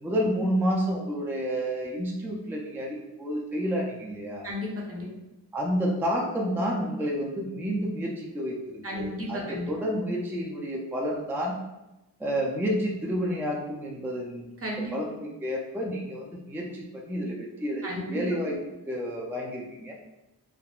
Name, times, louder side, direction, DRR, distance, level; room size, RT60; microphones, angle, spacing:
voice 1, 0.0-4.5 5.5-11.6 12.2-14.5 14.9-18.6 18.9-19.9, equal, 5° right, -2 dB, 0.4 m, -30 dB
voice 2, 4.4-5.1 8.8-9.7 14.6-14.9 17.8-18.2, equal, 35° right, -2 dB, 0.8 m, -34 dB
3.5 x 2.1 x 2.3 m, 0.95 s
wide cardioid pair, 80°, 41 cm